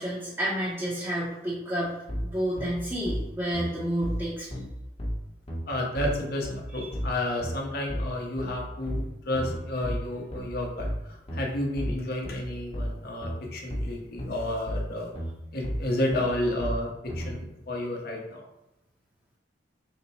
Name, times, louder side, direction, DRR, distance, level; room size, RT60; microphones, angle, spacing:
voice 1, 0.0-2.0 2.2-4.6 6.7-6.9, equal, 15° right, -7 dB, 0.7 m, -30 dB
sound 1, 2.1-17.3, equal, 35° left, 0.9 m, -33 dB
voice 2, 5.7-15.1 15.5-18.4, left 1 dB, 60° left, 0 dB, 0.8 m, -31 dB
4.1 x 2.2 x 4.1 m, 0.93 s
head